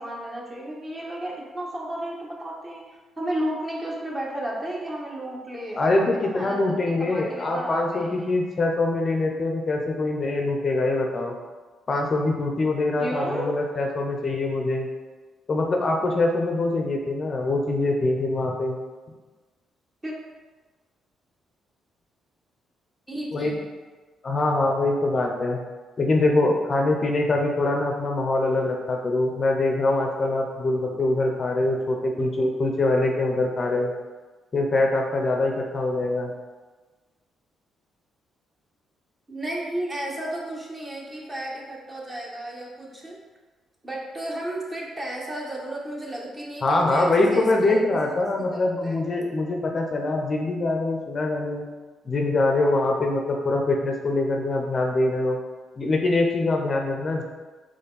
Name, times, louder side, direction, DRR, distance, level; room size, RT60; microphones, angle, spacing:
voice 1, 0.0-8.4 13.0-13.5 20.0-20.1 23.1-23.6 39.3-43.2 43.8-47.8 48.5-49.0, right 1 dB, 20° right, -3 dB, 1.1 m, -33 dB
voice 2, 5.8-11.3 11.9-14.9 15.5-18.8 23.3-23.6 24.2-25.6 26.0-33.9 34.5-36.3 46.6-51.6 52.1-55.4 55.8-57.2, left 2 dB, 40° left, 2 dB, 0.5 m, -23 dB
4.3 x 3.0 x 3.9 m, 1.3 s
cardioid pair, 90°, 0 cm